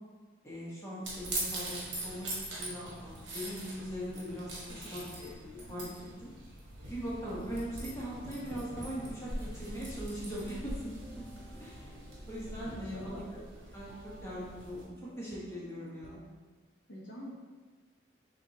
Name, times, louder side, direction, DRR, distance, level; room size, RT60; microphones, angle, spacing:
voice 1, 0.4-6.3 6.8-11.2 11.6-11.8 12.3-13.4 13.7-16.2, equal, 15° left, -7 dB, 1.1 m, -41 dB
sound 1, 1.0-14.8, right 1 dB, 70° right, 1.3 m, -42 dB
sound 2, 6.8-16.2, right 2 dB, 30° right, 0.4 m, -56 dB
voice 2, 12.7-13.2 16.9-17.3, equal, 85° left, -4 dB, 1.1 m, -45 dB
7.0 x 2.6 x 2.8 m, 1.4 s
head